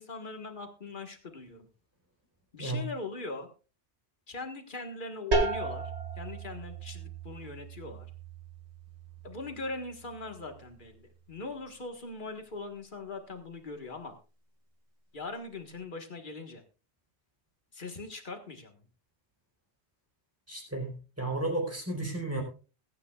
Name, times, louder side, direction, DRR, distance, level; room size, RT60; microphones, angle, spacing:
voice 1, 0.0-1.7 2.5-3.5 4.3-5.8 6.2-8.1 9.2-14.1 15.1-16.6 17.7-18.8, left 3 dB, 45° left, 5 dB, 1.8 m, -41 dB
sound 1, 5.3-10.8, right 2 dB, 80° right, 2.4 m, -35 dB
voice 2, 20.5-22.4, right 2 dB, 15° right, 1 dB, 4.2 m, -33 dB
21.5 x 9.7 x 2.4 m, 0.35 s
omnidirectional pair, 1.1 m